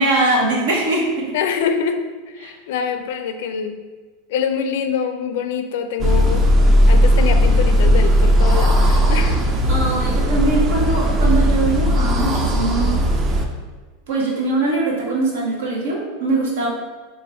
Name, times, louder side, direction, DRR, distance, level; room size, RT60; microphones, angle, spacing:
voice 1, 0.0-1.3 2.4-2.5 9.7-13.0 14.1-16.7, right 2 dB, 85° right, -2 dB, 1.1 m, -21 dB
voice 2, 1.3-2.0 2.3-3.8 4.3-6.5 6.9-9.4, left 6 dB, 70° left, 7 dB, 0.4 m, -24 dB
sound 1, 6.0-13.4, equal, 25° right, 0.4 m, -16 dB
2.9 x 2.7 x 4.3 m, 1.4 s
supercardioid pair, 150°, 0 cm